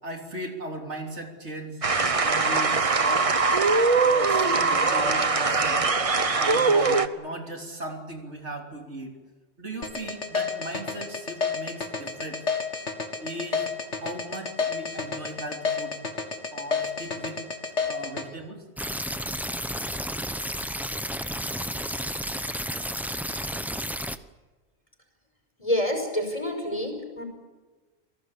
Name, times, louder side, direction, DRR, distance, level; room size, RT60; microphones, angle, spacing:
voice 1, 0.0-1.8 2.2-3.3 4.0-5.9 6.4-9.1 9.6-12.4 13.2-16.0 16.5-17.4 17.9-18.6, right 1 dB, 80° right, 2 dB, 3.7 m, -37 dB
sound 1, 1.8-7.1, right 4 dB, 30° right, 1.0 m, -22 dB
sound 2, 9.8-18.2, left 5 dB, 85° left, 2.4 m, -29 dB
sound 3, 18.8-24.2, equal, ahead, 0.8 m, -32 dB
voice 2, 25.6-27.2, left 1 dB, 30° left, 5 dB, 5.3 m, -27 dB
28.0 x 18.5 x 8.5 m, 1.3 s
omnidirectional pair, 1.2 m